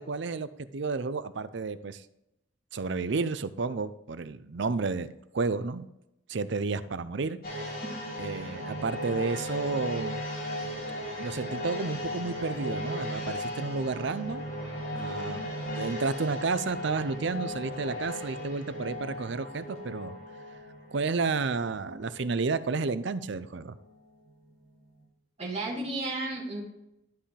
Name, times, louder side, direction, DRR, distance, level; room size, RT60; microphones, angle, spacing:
voice 1, 0.0-2.0 2.7-5.9 6.3-7.4 8.2-10.2 11.2-14.5 14.9-15.5 15.8-20.2 20.9-23.8, right 4 dB, 65° right, 14 dB, 0.5 m, -31 dB
sound 1, 7.4-24.1 24.5-24.6, left 1 dB, 50° left, 2.9 m, -37 dB
voice 2, 25.4-26.6, right 2 dB, 35° right, -3 dB, 2.6 m, -33 dB
12.5 x 5.7 x 3.3 m, 0.85 s
head